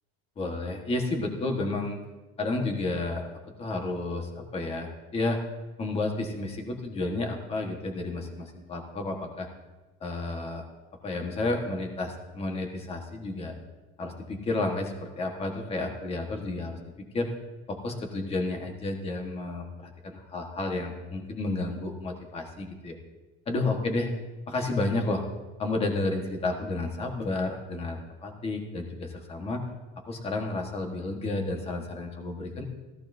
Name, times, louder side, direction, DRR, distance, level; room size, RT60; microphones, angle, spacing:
voice 1, 0.4-2.0 2.4-5.4 5.8-9.5 10.0-10.6 11.0-13.5 14.0-17.3 17.7-23.0 23.5-24.1 24.5-25.2 25.6-29.6 30.1-32.6, left 2 dB, 20° left, 3 dB, 1.5 m, -31 dB
16.5 x 14.5 x 2.7 m, 1.2 s
cardioid pair, 175°, 31 cm